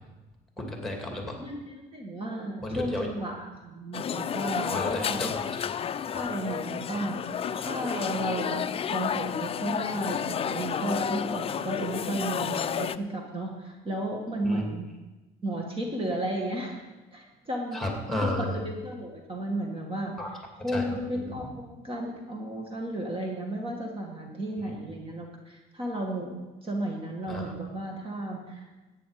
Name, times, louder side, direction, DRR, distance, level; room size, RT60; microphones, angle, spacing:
voice 1, 0.6-1.4 2.6-3.1 4.7-5.4 14.4-14.6 17.7-18.6 20.2-20.3 20.7-20.8 21.1-21.3 27.3-27.4, left 1 dB, ahead, 1 dB, 2.6 m, -32 dB
voice 2, 1.4-5.2 6.1-8.6 8.9-14.9 15.4-16.8 17.1-17.8 18.2-20.1 20.6-28.7, right 1 dB, 30° right, 1 dB, 2.0 m, -33 dB
sound 1, 3.9-13.0, left 8 dB, 35° left, 0.4 m, -31 dB
14.0 x 9.4 x 5.0 m, 1.1 s
cardioid pair, 110°, 17 cm